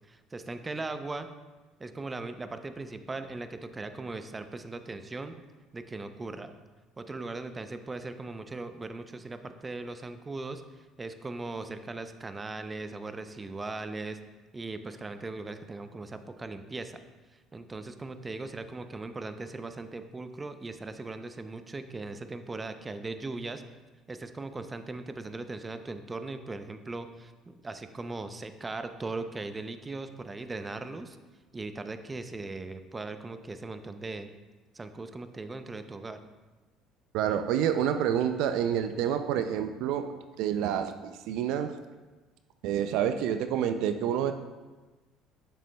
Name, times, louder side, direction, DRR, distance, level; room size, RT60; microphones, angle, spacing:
voice 1, 0.1-1.3 1.8-5.3 5.7-6.5 7.0-14.2 14.5-17.0 17.5-23.6 24.1-31.2 31.5-34.3 34.7-36.2, right 3 dB, 20° right, 9 dB, 0.5 m, -39 dB
voice 2, 37.1-41.8 42.6-44.3, right 9 dB, 70° right, 9 dB, 0.4 m, -28 dB
9.3 x 6.9 x 2.2 m, 1.2 s
supercardioid pair, 80°, 0 cm